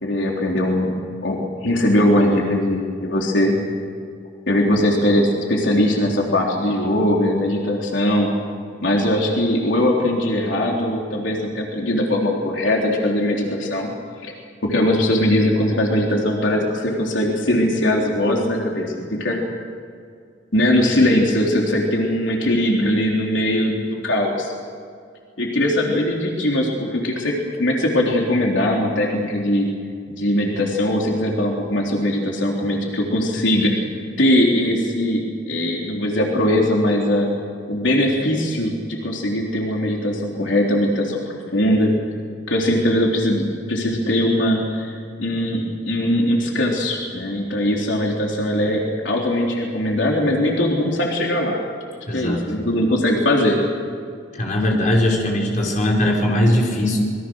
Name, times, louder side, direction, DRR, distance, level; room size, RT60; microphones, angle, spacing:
voice 1, 0.0-1.0 1.2-3.5 4.5-8.3 8.8-13.9 14.2-14.3 14.6-19.4 20.5-24.5 25.4-27.3 27.6-29.7 30.1-33.8 34.2-37.3 37.7-41.2 41.5-41.9 42.5-51.6 52.1-53.6, left 1 dB, 85° left, -1 dB, 3.7 m, -20 dB
voice 2, 52.1-52.4 54.3-57.0, left 1 dB, 45° left, -1 dB, 5.2 m, -19 dB
27.0 x 22.5 x 6.4 m, 2.2 s
head